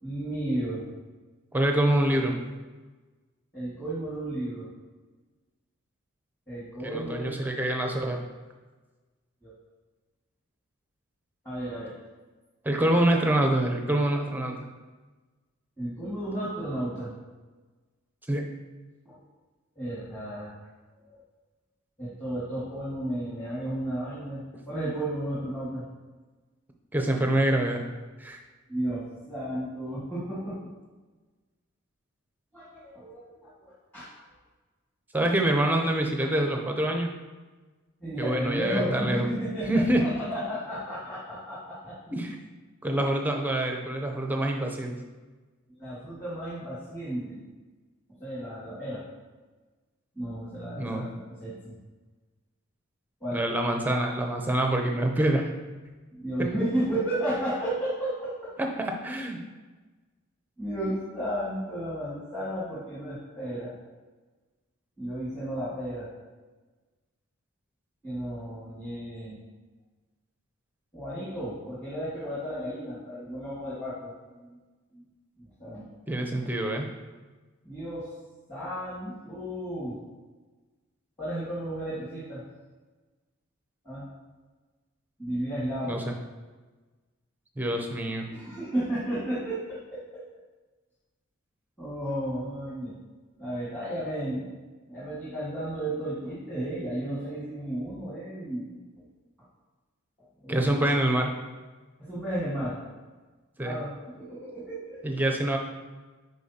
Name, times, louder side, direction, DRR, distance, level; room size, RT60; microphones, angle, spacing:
voice 1, 0.0-0.9 3.5-4.7 6.5-7.3 9.4-9.5 11.4-11.9 15.8-17.1 19.1-19.2 19.8-20.5 21.1-21.2 22.0-25.8 28.7-30.6 32.5-34.1 38.0-42.0 45.8-47.4 48.2-49.0 50.2-51.7 53.2-53.4 56.1-58.5 60.6-63.7 65.0-66.1 68.0-69.4 70.9-74.6 74.9-75.0 75.4-75.8 77.6-78.1 78.5-79.9 81.2-82.4 83.8-84.1 85.2-86.0 88.3-90.2 91.8-92.9 93.4-94.5 94.9-98.7 100.4-100.8 102.0-102.7 103.6-105.0, right 1 dB, 10° left, -11 dB, 1.8 m, -33 dB
voice 2, 1.5-2.4 6.8-8.2 12.6-14.6 18.3-18.4 26.9-27.8 28.2-28.4 35.1-37.1 38.2-39.3 39.7-40.0 42.1-42.4 42.8-44.9 50.8-51.1 53.3-55.5 58.6-59.4 76.1-76.9 85.9-86.1 87.6-88.3 100.5-101.3 103.6-103.8 105.0-105.6, right 1 dB, 10° right, 2 dB, 0.6 m, -26 dB
10.0 x 4.0 x 2.8 m, 1.3 s
head